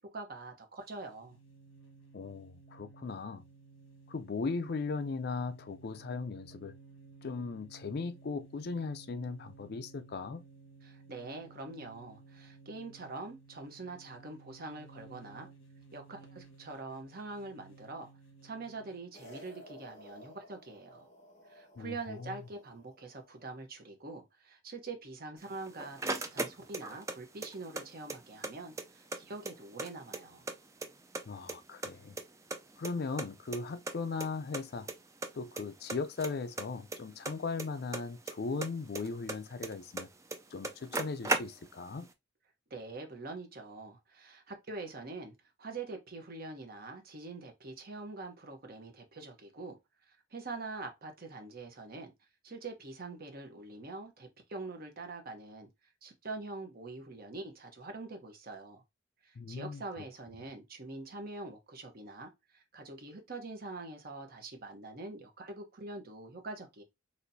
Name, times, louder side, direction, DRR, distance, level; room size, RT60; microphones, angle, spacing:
voice 1, 0.1-1.4 10.8-15.5 15.9-18.1 18.4-21.1 21.5-30.4 42.7-49.8 50.1-52.1 52.4-55.7 56.0-58.8 59.2-66.8, right 3 dB, 50° right, 1.0 m, -44 dB
sound 1, 0.8-19.0, right 4 dB, 80° left, 1.2 m, -57 dB
voice 2, 2.1-3.4 4.1-6.8 7.2-10.4 21.8-22.3 31.3-32.1 32.8-34.9 35.3-40.1 40.5-42.1 59.4-59.8, left 4 dB, 55° left, 0.4 m, -38 dB
sound 2, 19.1-23.6, equal, 35° left, 1.7 m, -55 dB
sound 3, 25.4-27.2 27.4-28.5 28.8-28.9 29.1-30.5 30.8-31.6 31.8-33.3 33.5-33.6 33.9-34.0 34.2-34.3 34.5-34.9 35.2-35.6 35.9-38.3 38.6-40.0 40.3-40.4 40.6-41.9, right 3 dB, 15° right, 0.4 m, -36 dB
4.2 x 2.9 x 2.6 m
head